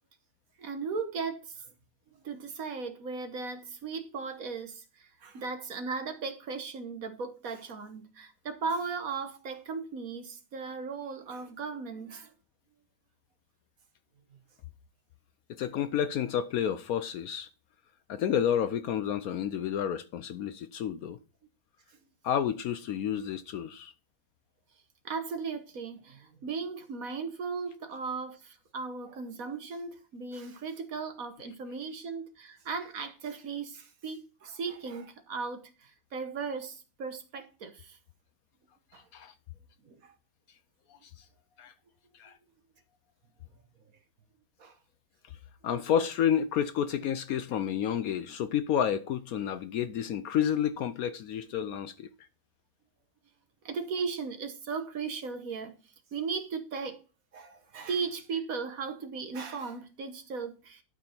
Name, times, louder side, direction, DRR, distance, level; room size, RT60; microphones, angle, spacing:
voice 1, 0.6-1.7 2.1-12.3 21.9-22.0 25.0-38.0 38.9-39.0 39.8-40.1 44.6-44.7 53.6-55.8 56.1-57.0 57.3-60.8, right 5 dB, 60° right, 1.5 m, -37 dB
voice 2, 15.5-17.5 18.1-21.2 22.2-23.9 39.1-39.3 40.9-41.2 41.6-41.7 42.1-42.4 45.6-52.1, left 9 dB, 70° left, 0.9 m, -30 dB
12.0 x 5.0 x 4.4 m
omnidirectional pair, 1.8 m